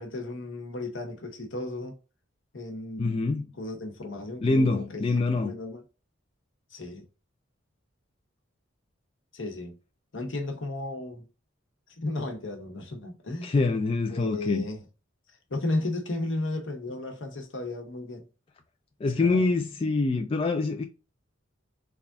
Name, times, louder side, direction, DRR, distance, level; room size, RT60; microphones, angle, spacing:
voice 1, 0.0-2.0 2.5-3.3 3.6-5.8 6.7-7.1 9.3-9.8 10.1-11.3 12.0-13.5 14.1-14.8 15.5-18.3 19.2-19.5, left 2 dB, 65° left, 1.0 m, -34 dB
voice 2, 3.0-3.4 4.4-5.5 13.4-14.7 19.0-20.8, left 3 dB, 30° left, 0.3 m, -25 dB
3.4 x 2.4 x 3.4 m
head